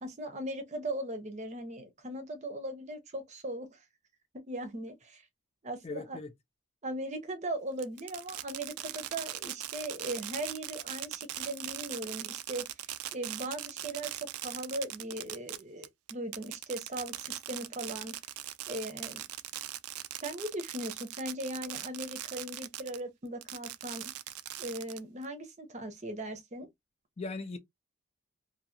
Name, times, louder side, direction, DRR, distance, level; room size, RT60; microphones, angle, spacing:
voice 1, 0.0-3.8 4.5-5.2 5.6-6.2 6.8-12.7 13.1-18.2 18.7-19.3 20.2-24.1 24.6-26.7, right 1 dB, 30° right, 0.6 m, -39 dB
voice 2, 5.8-6.3 27.2-27.6, left 3 dB, 30° left, 0.3 m, -38 dB
Fireworks, 7.8-23.0 23.4-25.3, right 13 dB, 85° right, 0.4 m, -40 dB
2.8 x 2.7 x 2.6 m
head